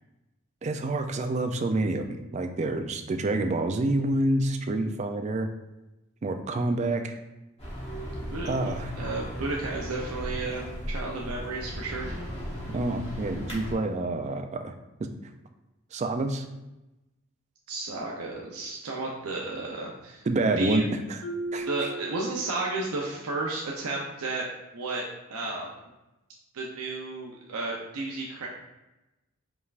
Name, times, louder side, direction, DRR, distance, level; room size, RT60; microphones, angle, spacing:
voice 1, 0.6-5.5 6.2-7.2 8.4-8.9 12.7-14.7 15.9-16.5 20.3-20.8 21.1-21.2 21.5-21.7, right 2 dB, 30° right, 6 dB, 0.3 m, -27 dB
sound 1, 7.6-13.7, equal, 30° left, 1.2 m, -36 dB
voice 2, 8.3-12.1 17.7-20.3 20.6-20.8 21.6-24.5 24.7-25.0 25.3-25.7 26.5-28.5, right 2 dB, 85° right, -2 dB, 0.6 m, -33 dB
Marimba xylophone, 21.2-23.0, right 1 dB, 50° left, 0.4 m, -37 dB
5.3 x 3.3 x 2.4 m, 0.99 s
head